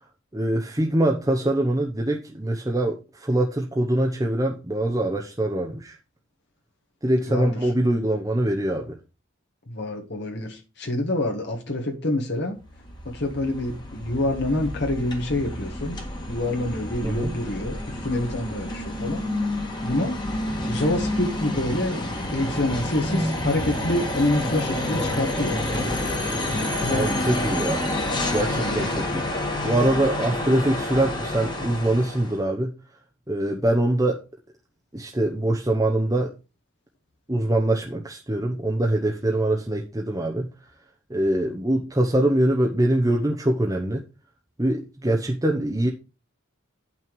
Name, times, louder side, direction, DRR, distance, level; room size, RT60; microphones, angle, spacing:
voice 1, 0.3-6.0 7.0-8.9 17.0-17.3 26.9-27.9 28.3-32.7 33.3-34.2 34.9-36.3 37.3-40.5 41.1-44.0 44.6-45.9, right 1 dB, 15° right, 0.8 m, -23 dB
voice 2, 7.2-7.7 9.7-12.6 13.0-19.3 19.8-20.2 20.7-25.6 26.5-27.2 28.5-28.8, left 1 dB, 55° left, 1.5 m, -27 dB
sound 1, 12.6-32.4, left 1 dB, 20° left, 1.7 m, -29 dB
9.1 x 5.9 x 4.6 m
head